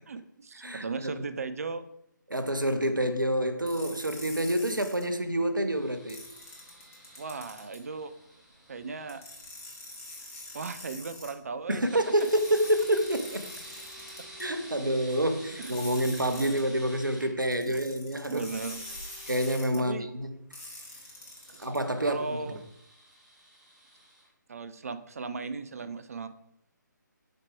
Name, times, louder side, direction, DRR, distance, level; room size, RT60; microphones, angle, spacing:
voice 1, 0.1-1.8 7.2-8.1 8.7-9.2 10.5-11.8 15.6-16.0 16.4-16.7 17.7-17.8 18.3-18.8 19.8-20.1 21.5-21.7 22.0-22.6 24.5-26.3, right 4 dB, 50° right, 0.6 m, -37 dB
voice 2, 0.6-1.2 2.3-6.2 11.7-13.5 14.4-18.5 19.3-20.4 21.6-22.6, right 1 dB, 80° right, 1.0 m, -28 dB
sound 1, 3.7-5.0 6.1-7.8 9.1-11.3 12.2-14.4 15.6-16.6 17.5-19.8 20.5-21.8, left 2 dB, 40° left, 2.9 m, -44 dB
sound 2, 5.7-11.0 11.7-17.3 18.3-19.6 20.6-24.3, right 1 dB, 5° right, 1.1 m, -50 dB
6.8 x 4.9 x 4.7 m
figure-of-eight pair, 145°, 10 cm